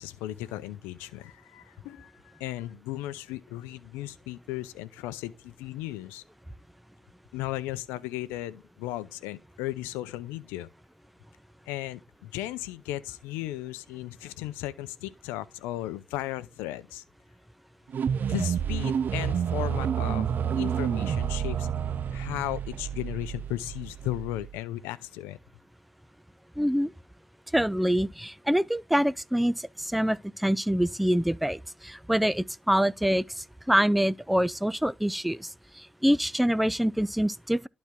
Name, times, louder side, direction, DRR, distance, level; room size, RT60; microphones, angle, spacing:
voice 1, 0.0-6.2 7.3-10.7 11.7-17.0 18.2-20.3 20.6-21.7 22.1-25.4, left 15 dB, 85° left, 0.5 m, -36 dB
sound 1, 17.9-24.6, right 8 dB, 55° right, 0.4 m, -29 dB
voice 2, 26.6-26.9 27.5-35.5 36.0-37.7, equal, ahead, 0.4 m, -25 dB
11.5 x 4.3 x 3.5 m
hypercardioid pair, 50°, 4 cm